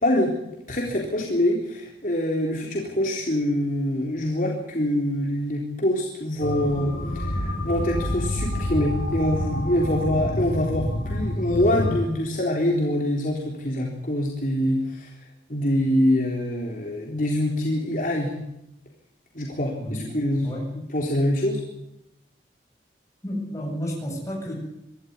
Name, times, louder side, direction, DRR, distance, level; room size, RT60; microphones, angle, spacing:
voice 1, 0.0-0.3 0.7-15.1 15.5-18.3 19.3-20.5 20.9-21.6, left 1 dB, 45° left, -2 dB, 3.8 m, -25 dB
sound 1, 6.4-12.0, left 1 dB, 60° left, 4.1 m, -28 dB
voice 2, 19.8-20.1 20.4-20.7 23.2-24.5, equal, 15° left, -1 dB, 7.6 m, -31 dB
25.5 x 13.5 x 9.7 m, 0.84 s
head